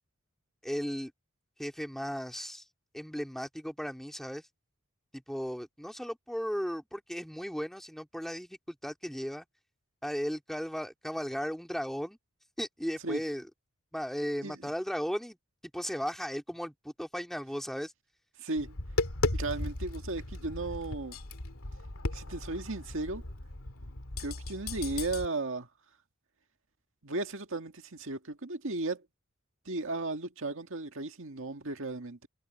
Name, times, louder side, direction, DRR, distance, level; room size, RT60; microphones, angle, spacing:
voice 1, 0.6-1.1 1.6-2.6 2.9-4.4 5.1-9.5 10.0-12.2 12.6-13.5 13.9-15.4 15.7-17.9, equal, ahead, 2.2 m, -36 dB
voice 2, 18.4-18.7 19.3-21.2 22.1-23.3 24.2-25.7 27.0-29.0 29.7-32.3, right 2 dB, 65° right, 2.0 m, -35 dB
Tap, 18.6-25.3, left 2 dB, 90° left, 2.2 m, -36 dB
head